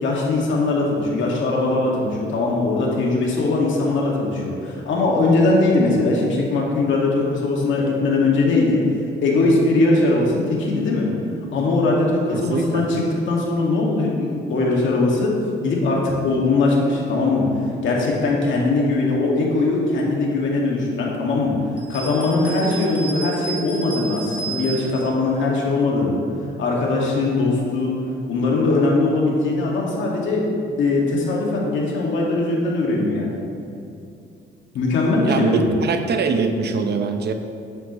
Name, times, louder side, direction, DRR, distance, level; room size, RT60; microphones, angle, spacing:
voice 1, 0.0-8.9 9.2-11.1 11.5-15.3 15.6-17.5 17.8-21.5 21.9-26.2 26.6-28.0 28.3-33.4 34.7-35.7, left 2 dB, 75° left, -2 dB, 2.0 m, -20 dB
voice 2, 12.3-12.9 35.2-37.3, right 5 dB, 55° right, 6 dB, 0.8 m, -23 dB
sound 1, 21.8-25.1, right 4 dB, 5° right, 1.6 m, -33 dB
9.9 x 9.1 x 3.1 m, 2.5 s
cardioid pair, 90°, 20 cm